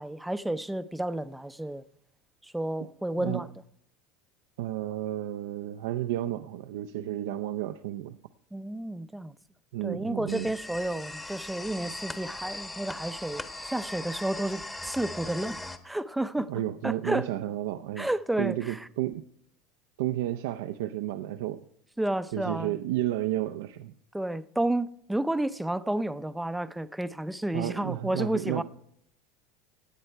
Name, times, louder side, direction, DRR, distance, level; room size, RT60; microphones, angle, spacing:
voice 1, 0.0-1.8 2.4-3.5 8.5-9.3 9.8-15.6 15.8-16.5 16.8-17.3 18.0-18.9 22.0-22.8 24.1-28.6, right 1 dB, 5° right, 0.6 m, -31 dB
voice 2, 4.6-8.2 9.7-10.5 16.5-18.1 18.4-19.2 20.0-21.6 22.3-23.9 27.5-28.6, right 13 dB, 80° right, 0.5 m, -32 dB
sound 1, 10.3-15.8, left 2 dB, 15° left, 1.1 m, -39 dB
17.5 x 8.7 x 4.5 m
supercardioid pair, 110°, 0 cm